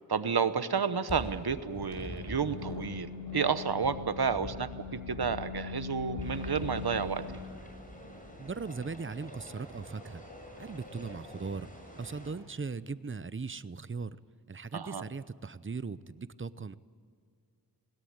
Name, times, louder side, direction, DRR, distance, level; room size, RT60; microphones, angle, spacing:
voice 1, 0.1-7.2 14.7-15.0, right 6 dB, 75° right, 12 dB, 1.0 m, -31 dB
sound 1, 1.1-8.4, left 4 dB, 75° left, 5.4 m, -41 dB
sound 2, 6.2-12.3, equal, 20° left, 6.7 m, -49 dB
voice 2, 8.4-10.2 10.6-11.7 12.0-14.2 14.5-16.8, right 4 dB, 30° right, 16 dB, 0.7 m, -39 dB
21.0 x 17.5 x 8.8 m, 2.2 s
wide cardioid pair, 50°, 38 cm